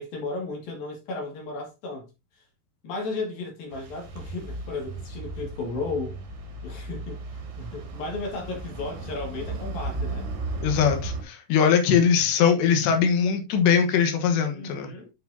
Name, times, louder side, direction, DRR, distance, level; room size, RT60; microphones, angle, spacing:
voice 1, 0.0-2.1 2.8-6.1 6.6-10.3 14.5-15.1, left 3 dB, 60° left, 3.9 m, -34 dB
sound 1, 3.7-11.2, right 2 dB, 75° right, 4.1 m, -35 dB
voice 2, 10.6-14.9, left 7 dB, 90° left, 3.6 m, -21 dB
9.5 x 6.0 x 2.8 m
omnidirectional pair, 4.8 m